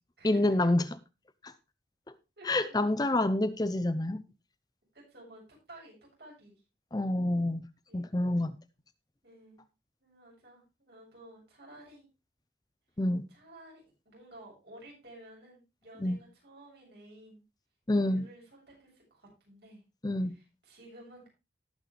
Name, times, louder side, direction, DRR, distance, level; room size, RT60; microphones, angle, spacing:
voice 1, 0.2-0.8 1.4-1.5 2.5-4.2 6.9-7.7 7.9-8.6 13.0-13.3 16.0-16.2 17.9-18.3 20.0-20.4, left 1 dB, 20° left, 0.6 m, -27 dB
voice 2, 2.4-2.9 4.9-5.4 5.7-6.6 7.9-8.1 9.2-9.6 10.0-12.1 13.3-17.4 17.9-19.8 20.2-21.3, right 1 dB, 65° right, 7.6 m, -53 dB
18.0 x 6.3 x 3.3 m
head